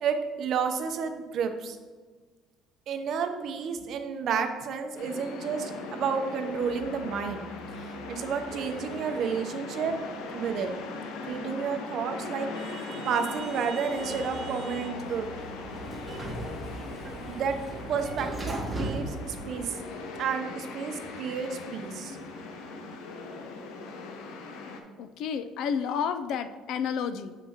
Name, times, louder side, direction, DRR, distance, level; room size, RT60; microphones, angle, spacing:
voice 1, 0.0-1.8 2.9-7.5 7.8-10.0 10.3-10.7 11.3-15.3 16.1-16.3 17.3-17.6 17.9-19.8 20.2-22.2, right 6 dB, 50° right, 6 dB, 0.6 m, -31 dB
sound 1, 5.0-24.8, left 3 dB, 90° left, 0.7 m, -39 dB
Sliding door, 15.0-20.2, right 1 dB, 15° right, 0.9 m, -37 dB
voice 2, 25.0-27.4, left 7 dB, 65° left, 10 dB, 0.4 m, -31 dB
7.2 x 5.7 x 2.8 m, 1.4 s
cardioid pair, 150°, 0 cm